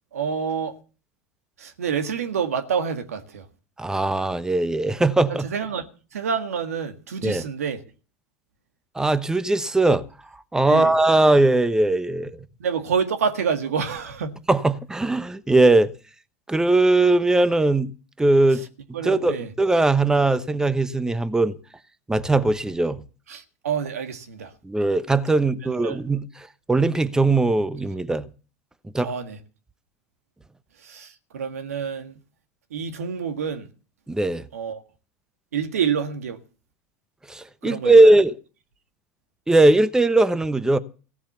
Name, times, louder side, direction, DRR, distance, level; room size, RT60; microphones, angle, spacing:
voice 1, 0.1-0.8 1.6-3.5 5.3-5.8 6.1-7.8 10.7-11.0 12.6-14.4 18.5-18.6 18.9-19.5 23.3-24.5 25.6-26.0 29.0-29.4 30.8-32.2 32.7-33.7 34.5-34.8 35.5-36.4 37.6-38.2, right 6 dB, 80° right, 1.7 m, -28 dB
voice 2, 3.8-5.5 7.2-7.4 9.0-10.0 10.5-12.3 14.5-15.9 16.5-17.9 18.2-18.6 19.0-21.6 22.1-23.0 24.6-26.3 26.7-28.3 28.9-29.1 34.1-34.4 37.3-38.3 39.5-40.8, right 2 dB, 10° right, 0.9 m, -19 dB
16.0 x 7.4 x 6.9 m
hypercardioid pair, 90°, 8 cm